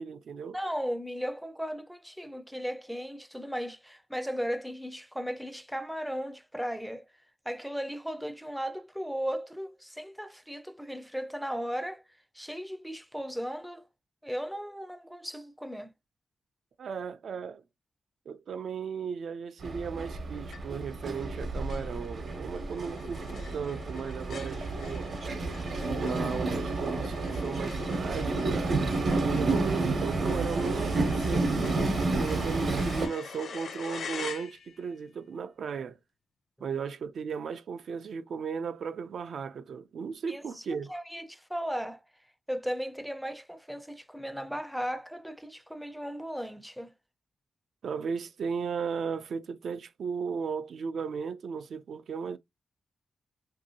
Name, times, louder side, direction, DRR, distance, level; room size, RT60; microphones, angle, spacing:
voice 1, 0.0-0.6 16.8-17.6 18.3-25.1 26.0-28.8 29.1-31.9 32.2-36.0 36.6-40.9 47.8-52.4, right 6 dB, 75° right, 0.3 m, -36 dB
voice 2, 0.5-7.1 7.5-12.0 12.3-13.8 14.2-15.9 40.3-40.6 40.9-42.0 42.5-46.9, equal, ahead, 0.3 m, -36 dB
Train, 19.6-33.1, right 3 dB, 60° right, 0.8 m, -30 dB
sound 1, 20.5-21.0 21.3-21.4 21.7-35.0, left 6 dB, 80° left, 0.4 m, -45 dB
2.9 x 2.7 x 2.7 m
wide cardioid pair, 125°, 0 cm